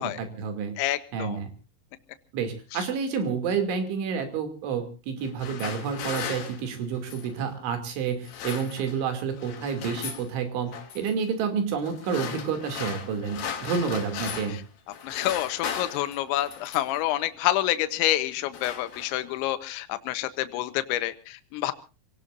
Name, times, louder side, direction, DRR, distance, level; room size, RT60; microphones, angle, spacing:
voice 1, 0.0-0.8 1.1-1.5 2.3-14.6, right 6 dB, 80° right, 7 dB, 5.1 m, -29 dB
voice 2, 0.8-1.4 15.0-21.7, left 14 dB, 80° left, 11 dB, 3.3 m, -28 dB
sound 1, 5.2-7.4 8.1-9.1 9.4-10.3 10.7-11.1 11.8-14.7 14.9-17.0 17.8-18.0 18.3-19.4, left 7 dB, 55° left, 3.7 m, -37 dB
28.5 x 17.5 x 2.6 m, 0.34 s
omnidirectional pair, 5.4 m